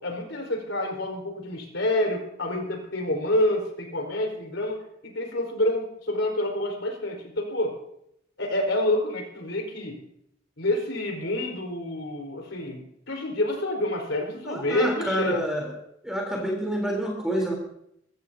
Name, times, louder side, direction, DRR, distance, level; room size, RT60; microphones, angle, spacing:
voice 1, 0.0-7.7 8.4-10.0 10.6-15.3, left 1 dB, 70° left, 2 dB, 4.5 m, -28 dB
voice 2, 14.4-15.8 16.0-17.5, equal, 5° right, -1 dB, 3.6 m, -27 dB
23.5 x 15.5 x 2.8 m, 0.74 s
head